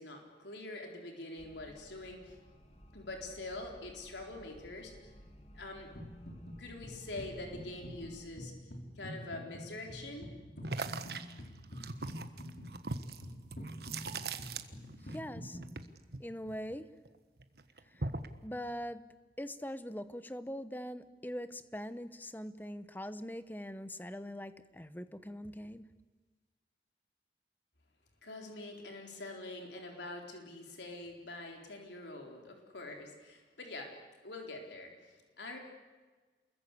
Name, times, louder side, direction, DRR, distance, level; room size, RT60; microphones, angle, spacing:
voice 1, 0.0-2.4 2.9-5.1 5.5-5.9 6.6-8.5 9.0-10.3 28.2-34.0 34.2-35.6, left 2 dB, 85° left, 2 dB, 4.1 m, -45 dB
sound 1, 1.4-8.3, equal, 35° left, 2.2 m, -56 dB
sound 2, 5.9-6.6 6.8-15.7, equal, 60° left, 3.9 m, -46 dB
sound 3, 10.6-15.2 15.4-17.1 17.4-18.4, right 3 dB, 65° right, 1.4 m, -40 dB
voice 2, 15.1-15.6 16.2-16.9 17.9-18.1 18.4-19.0 19.4-25.9, equal, 10° left, 12 dB, 0.9 m, -42 dB
29.0 x 21.5 x 8.5 m, 1.4 s
head